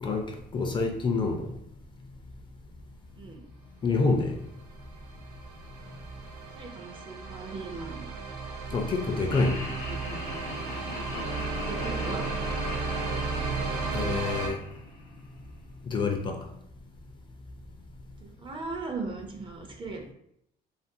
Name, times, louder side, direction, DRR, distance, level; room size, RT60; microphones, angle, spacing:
voice 1, 0.0-1.5 3.8-4.3 8.7-9.7 13.9-14.6 15.9-16.4, left 3 dB, 30° left, 4 dB, 0.4 m, -27 dB
sound 1, 4.6-14.5, right 4 dB, 90° right, 0.5 m, -35 dB
voice 2, 6.6-8.1 11.5-12.3 13.7-14.3 18.2-20.1, right 3 dB, 30° right, 3 dB, 0.5 m, -38 dB
Laughter, 9.3-15.5, left 2 dB, 70° left, 0.6 m, -41 dB
Bowed string instrument, 11.1-15.4, left 1 dB, 60° right, 0.9 m, -40 dB
2.5 x 2.5 x 2.6 m, 0.74 s
cardioid pair, 110°, 17 cm